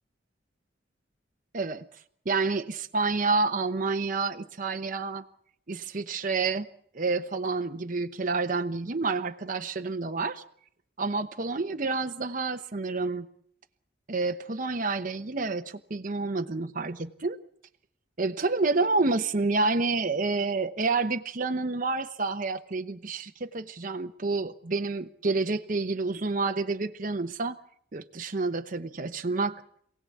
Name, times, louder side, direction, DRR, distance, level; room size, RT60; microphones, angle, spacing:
voice 1, 1.5-1.9 2.3-5.2 5.7-6.7 6.9-10.4 11.0-13.3 14.1-17.4 18.2-27.6 27.9-29.6, right 3 dB, 45° right, 6 dB, 0.9 m, -29 dB
27.0 x 17.5 x 8.4 m, 0.69 s
head